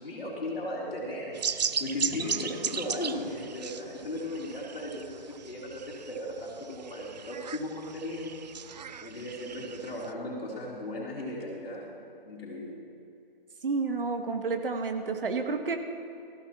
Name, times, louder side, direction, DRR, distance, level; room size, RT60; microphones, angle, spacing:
voice 1, 0.0-8.4 9.0-11.9 12.2-12.8, left 1 dB, 75° left, -4 dB, 3.4 m, -36 dB
sound 1, 1.3-10.1, right 7 dB, 45° right, 0.5 m, -37 dB
voice 2, 13.6-15.8, right 4 dB, 65° right, 5 dB, 1.6 m, -30 dB
18.0 x 15.0 x 3.0 m, 2.8 s
hypercardioid pair, 155°, 29 cm